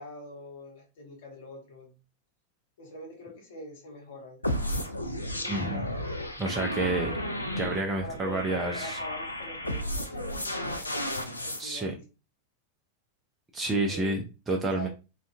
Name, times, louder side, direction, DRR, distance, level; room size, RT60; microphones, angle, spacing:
voice 1, 0.0-1.9 2.8-4.4 5.3-5.9 6.7-7.2 8.0-10.9 11.4-12.0 13.7-14.2 14.7-14.9, left 1 dB, 55° left, 1 dB, 1.0 m, -43 dB
sound 1, 4.4-11.6, left 1 dB, 85° left, 0.3 m, -33 dB
voice 2, 5.5-5.9 6.4-7.1 7.6-9.0 11.6-11.9 13.5-14.9, right 2 dB, 15° right, 1 dB, 0.4 m, -29 dB
2.4 x 2.3 x 2.5 m, 0.30 s
figure-of-eight pair, 90°, 0 cm